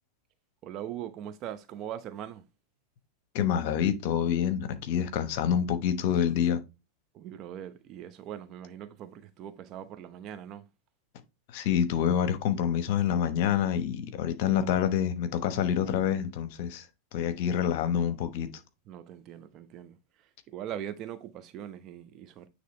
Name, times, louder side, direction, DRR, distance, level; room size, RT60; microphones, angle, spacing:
voice 1, 0.6-2.4 7.1-10.7 18.9-22.5, right 10 dB, 40° right, 0.9 m, -41 dB
voice 2, 3.3-6.6 11.5-16.9 17.1-18.5, left 9 dB, 55° left, 1.0 m, -27 dB
9.3 x 3.2 x 3.2 m
hypercardioid pair, 95°, 0 cm